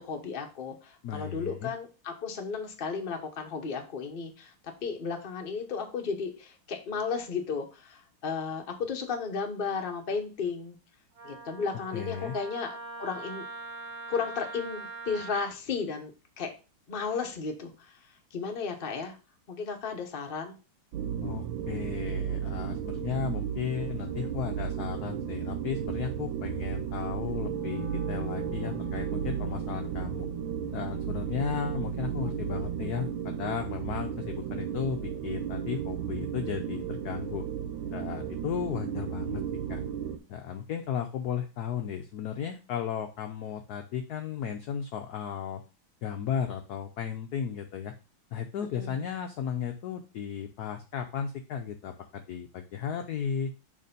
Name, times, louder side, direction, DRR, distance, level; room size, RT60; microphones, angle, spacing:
voice 1, 0.0-4.5 4.8-10.8 11.2-13.4 14.1-16.5 16.9-17.9 18.3-19.1 19.5-20.6 48.7-48.9, left 5 dB, 35° left, 4 dB, 0.9 m, -34 dB
voice 2, 1.0-1.7 11.7-12.3 21.2-30.3 30.7-37.4 37.9-39.4 39.7-39.8 40.3-45.6 46.0-47.9 48.3-53.5, left 8 dB, 70° left, 5 dB, 0.9 m, -35 dB
Wind instrument woodwind instrument, 11.2-15.5, right 3 dB, 40° right, 1.2 m, -42 dB
sound 1, 20.9-40.2, right 9 dB, 75° right, 1.4 m, -34 dB
Wind instrument woodwind instrument 2, 27.3-33.5, right 2 dB, 20° right, 1.7 m, -44 dB
6.6 x 3.4 x 5.2 m, 0.33 s
omnidirectional pair, 2.3 m